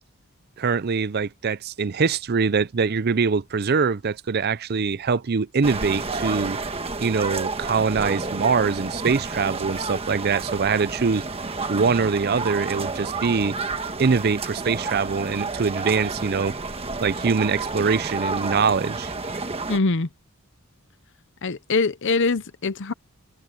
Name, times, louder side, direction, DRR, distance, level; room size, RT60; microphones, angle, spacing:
voice 1, 0.6-6.6 7.0-11.2 11.7-13.6 14.0-16.6 17.0-19.1, right 5 dB, 45° right, 0.5 m, -23 dB
sound 1, 5.6-19.8, right 3 dB, 25° right, 1.4 m, -30 dB
voice 2, 19.7-20.1 21.4-22.9, left 3 dB, 55° left, 0.7 m, -23 dB
head